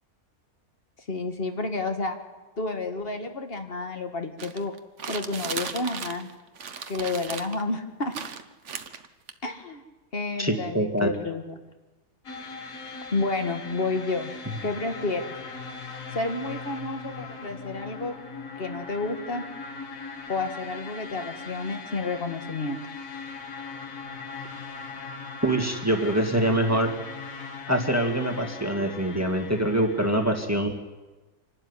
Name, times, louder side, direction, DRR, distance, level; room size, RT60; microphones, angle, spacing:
voice 1, 1.1-2.2 2.6-4.7 5.1-6.3 6.9-8.1 9.4-9.8 10.1-11.6 13.1-14.3 14.6-15.3 16.1-18.1 18.6-19.4 20.3-22.8, left 3 dB, 40° left, 6 dB, 1.9 m, -30 dB
sound 1, 4.4-6.3 6.6-7.6 8.1-9.3, right 6 dB, 55° right, 1.3 m, -36 dB
voice 2, 10.4-11.1 25.4-26.9 27.7-30.7, right 1 dB, 10° right, 3 dB, 1.9 m, -24 dB
sound 2, 12.2-30.5, left 4 dB, 60° left, 1.9 m, -39 dB
26.0 x 12.0 x 9.7 m, 1.2 s
omnidirectional pair, 1.6 m